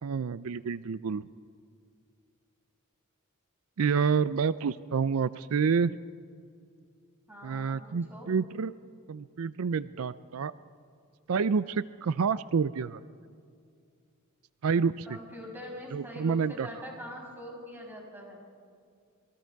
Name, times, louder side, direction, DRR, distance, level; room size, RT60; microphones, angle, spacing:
voice 1, 0.0-1.3 3.8-6.0 7.4-8.7 9.1-10.5 11.3-13.0 14.6-15.2 15.9-16.7, right 5 dB, 75° right, 16 dB, 0.5 m, -28 dB
voice 2, 7.3-8.3 15.1-18.4, equal, 10° right, -2 dB, 6.1 m, -43 dB
27.0 x 22.0 x 4.7 m, 2.3 s
head